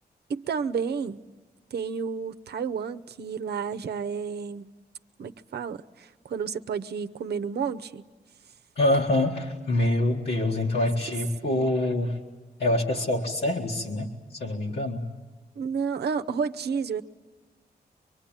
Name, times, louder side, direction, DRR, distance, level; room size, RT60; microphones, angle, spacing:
voice 1, 0.3-1.2 1.7-4.7 5.2-8.1 11.4-11.7 15.6-17.0, right 6 dB, 80° right, 10 dB, 0.7 m, -31 dB
voice 2, 8.8-12.2 12.6-15.0, left 1 dB, 70° left, -2 dB, 1.8 m, -25 dB
24.5 x 23.5 x 8.9 m, 1.3 s
wide cardioid pair, 150°, 17 cm